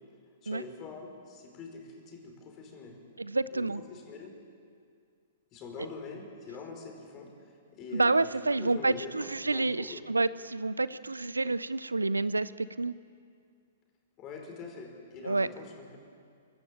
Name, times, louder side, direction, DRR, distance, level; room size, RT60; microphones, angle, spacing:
voice 1, 0.4-3.0 3.5-4.3 5.5-7.3 7.7-8.3 8.6-10.0 14.2-16.0, left 4 dB, 30° left, 2 dB, 5.0 m, -44 dB
voice 2, 3.2-3.8 7.9-12.9 15.2-15.5, right 3 dB, 85° right, 18 dB, 0.5 m, -29 dB
25.0 x 12.5 x 8.5 m, 2.2 s
figure-of-eight pair, 110°, 0 cm